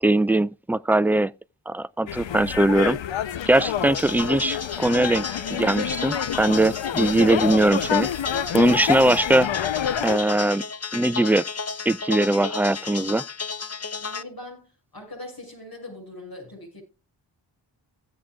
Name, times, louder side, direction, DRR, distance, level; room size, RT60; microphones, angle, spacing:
voice 1, 0.0-1.3 1.7-3.0 3.5-8.1 8.5-9.5 10.0-10.6 10.9-11.4 11.9-13.2, right 1 dB, 5° right, 0.4 m, -21 dB
sound 1, 2.1-10.2, left 9 dB, 85° left, 0.7 m, -28 dB
sound 2, 3.9-14.2, left 5 dB, 35° left, 0.9 m, -33 dB
voice 2, 14.0-16.8, left 1 dB, 55° left, 6.8 m, -41 dB
17.0 x 7.7 x 2.4 m
cardioid pair, 45°, 44 cm